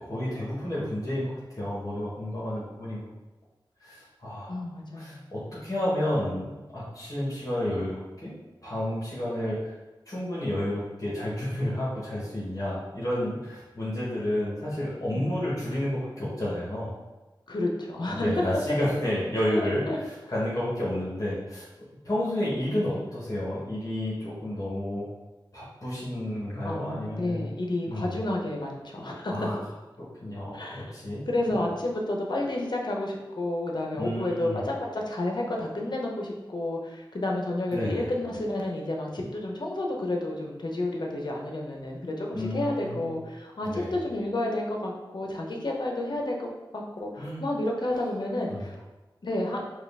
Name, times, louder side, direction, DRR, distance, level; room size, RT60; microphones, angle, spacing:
voice 1, 0.0-3.0 3.8-4.6 4.9-8.3 8.6-9.8 10.1-16.9 18.1-21.7 22.0-25.0 25.5-27.5 27.9-28.1 29.3-29.6 30.0-31.2 31.5-31.7 33.9-34.6 37.7-38.1 42.3-43.1 43.6-44.0 47.2-47.4 48.5-48.6, left 1 dB, 45° left, -7 dB, 1.2 m, -31 dB
voice 2, 4.5-5.3 15.1-15.3 17.5-18.5 19.5-20.0 26.6-29.3 30.5-30.8 31.3-48.7 49.2-49.6, left 1 dB, 60° left, 0 dB, 0.7 m, -30 dB
4.8 x 2.3 x 3.4 m, 1.1 s
wide cardioid pair, 70°, 8 cm